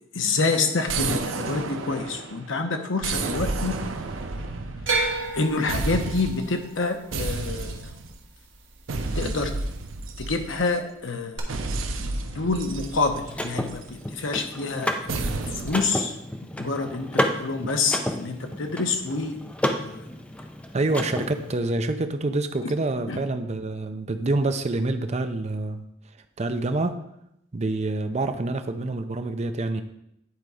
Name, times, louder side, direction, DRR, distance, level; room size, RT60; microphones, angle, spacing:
voice 1, 0.1-3.7 4.9-5.0 5.3-7.9 9.1-9.5 10.2-11.4 12.0-16.2 16.4-19.4 19.7-20.1 23.1-23.2, left 3 dB, 75° left, 6 dB, 0.9 m, -27 dB
sound 1, 0.9-2.5 3.0-5.4 5.7-6.5 7.1-8.1 8.9-10.8 11.5-13.9 15.1-15.8, right 3 dB, 80° right, 0.7 m, -31 dB
sound 2, 4.9-9.1 9.3-10.0 11.4-11.5, right 3 dB, 65° right, 1.5 m, -31 dB
Car / Mechanisms, 12.6-21.6, left 1 dB, 5° left, 0.5 m, -31 dB
voice 2, 20.7-25.8 26.4-26.9 27.5-29.8, right 2 dB, 35° right, 8 dB, 0.6 m, -27 dB
9.7 x 4.0 x 4.9 m, 0.79 s
head